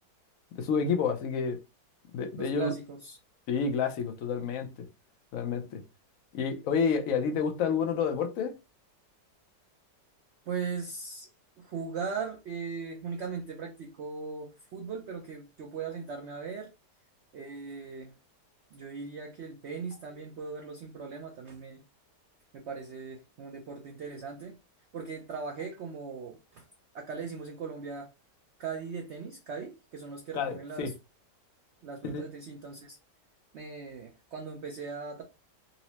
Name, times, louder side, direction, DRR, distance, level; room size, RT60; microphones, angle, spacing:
voice 1, 0.5-1.6 2.1-2.7 3.5-4.7 5.3-5.8 6.3-8.6 30.3-30.9 32.0-32.2, left 6 dB, 70° left, 0.8 m, -29 dB
voice 2, 2.4-3.2 10.5-11.3 11.6-16.7 17.3-18.1 18.7-21.8 22.5-24.5 24.9-26.6 26.9-28.1 28.6-30.9 31.8-33.0 33.5-35.2, right 5 dB, 90° right, 0.6 m, -39 dB
4.1 x 2.0 x 2.7 m
omnidirectional pair, 1.8 m